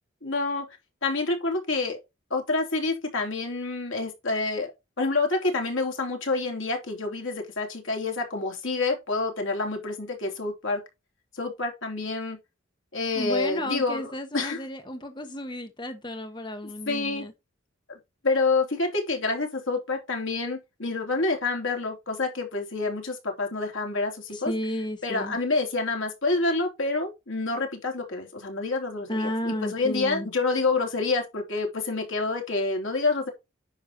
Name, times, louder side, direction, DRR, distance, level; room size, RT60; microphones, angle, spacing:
voice 1, 0.2-0.7 1.0-2.0 2.3-4.7 5.0-10.8 11.3-12.4 12.9-14.6 16.9-17.3 17.9-18.0 18.2-24.5 25.0-33.3, left 3 dB, 80° left, 3.2 m, -28 dB
voice 2, 13.1-17.3 24.3-25.4 29.1-30.3, equal, 25° left, 1.2 m, -33 dB
10.0 x 6.8 x 2.9 m
head